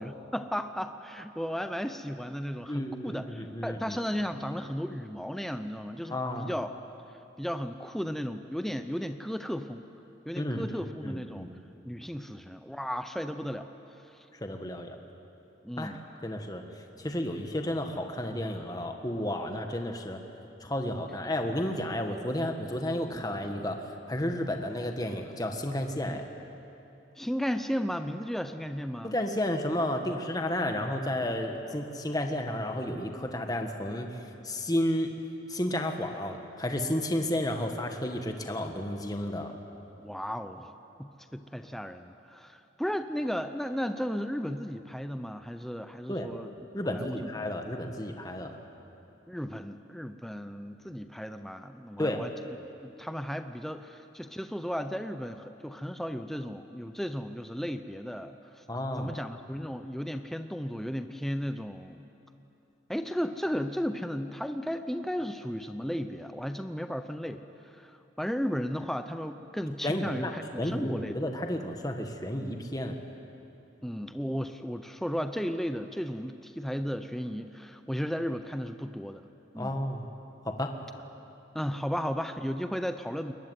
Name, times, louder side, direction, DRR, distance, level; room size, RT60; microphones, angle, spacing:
voice 1, 0.0-6.7 7.4-9.8 10.3-11.5 11.8-13.7 14.1-14.3 15.6-16.0 23.1-23.3 26.0-26.2 27.2-29.1 40.0-46.5 46.8-47.3 49.3-52.3 52.8-58.6 59.0-62.0 62.9-71.1 73.8-79.3 79.5-79.8 81.5-83.3, equal, ahead, 8 dB, 0.7 m, -35 dB
voice 2, 2.7-4.0 6.1-6.5 10.4-11.5 14.4-14.9 15.8-15.9 16.2-16.6 17.0-20.2 20.6-23.8 24.1-26.2 29.0-34.1 34.4-35.1 35.5-39.5 46.1-46.3 46.7-48.6 52.0-52.2 58.7-59.1 69.8-73.0 79.5-80.0 80.4-80.7, left 1 dB, 20° left, 4 dB, 1.5 m, -32 dB
22.0 x 21.5 x 9.5 m, 2.9 s
head